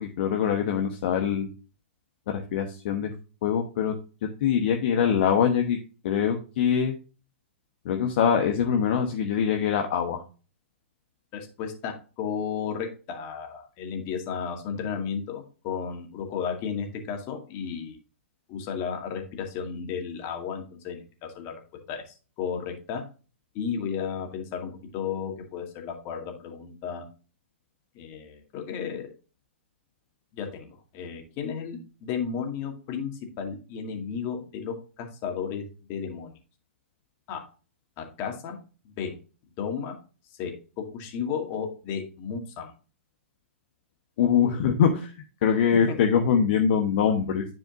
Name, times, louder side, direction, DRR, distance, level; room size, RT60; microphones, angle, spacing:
voice 1, 0.0-1.5 2.3-3.1 3.4-3.9 4.4-5.8 6.0-6.9 7.8-10.2 44.2-45.1 45.4-47.5, left 7 dB, 55° left, 4 dB, 1.1 m, -23 dB
voice 2, 11.3-18.0 18.5-21.5 21.9-23.0 23.5-27.1 27.9-29.1 30.3-35.6 35.9-36.3 37.3-37.4 38.0-38.6 38.8-39.2 39.6-40.0 40.4-42.7 45.9-46.0, left 7 dB, 40° left, 3 dB, 2.1 m, -33 dB
10.5 x 4.9 x 2.5 m, 0.35 s
hypercardioid pair, 120°, 7 cm